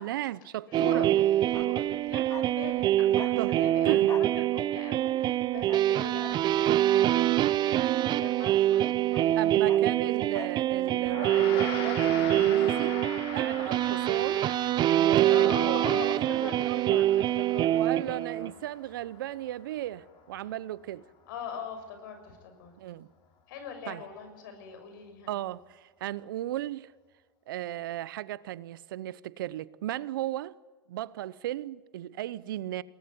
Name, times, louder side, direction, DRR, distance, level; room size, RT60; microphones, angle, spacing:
voice 1, 0.0-1.1 3.4-3.5 3.9-4.1 9.4-13.0 13.3-14.5 14.9-17.0 17.7-21.1 22.8-23.1 23.9-24.0 25.3-26.9 27.5-30.5 30.9-32.8, right 14 dB, 75° right, 0.8 m, -35 dB
voice 2, 0.7-4.1 4.3-9.0 15.3-17.7 18.1-18.5 21.3-22.7 23.5-25.3, left 6 dB, 70° left, 6.5 m, -42 dB
sound 1, 0.7-18.5, right 13 dB, 40° right, 0.7 m, -25 dB
Bark, 1.4-8.5 8.7-10.7 10.9-11.1, left 6 dB, 25° left, 2.1 m, -47 dB
Gong, 11.0-20.6, left 6 dB, 50° left, 5.0 m, -42 dB
22.5 x 19.0 x 9.7 m
hypercardioid pair, 95°, 11 cm